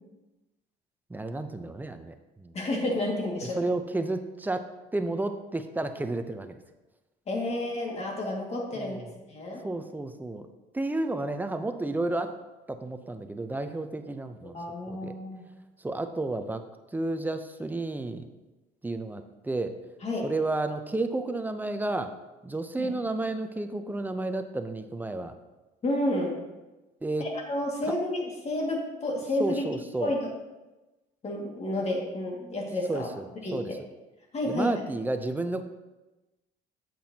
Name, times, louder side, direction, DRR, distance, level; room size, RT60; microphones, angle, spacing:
voice 1, 1.1-2.5 3.4-4.7 4.9-6.6 8.7-9.1 9.6-10.5 10.7-12.4 12.7-14.5 14.9-15.2 15.8-16.6 16.9-18.3 18.8-19.7 20.2-22.1 22.4-25.3 27.0-27.3 27.9-28.0 29.4-30.1 32.9-33.8 34.5-35.6, right 2 dB, 10° right, 8 dB, 0.6 m, -31 dB
voice 2, 2.5-3.6 7.3-9.0 9.3-9.6 14.5-15.4 20.0-20.3 22.8-22.9 25.8-26.4 27.2-29.6 30.0-30.2 31.2-33.1 33.4-33.6 34.3-34.8, left 1 dB, 40° left, 0 dB, 2.0 m, -30 dB
8.4 x 7.8 x 2.8 m, 1.1 s
cardioid pair, 110°, 17 cm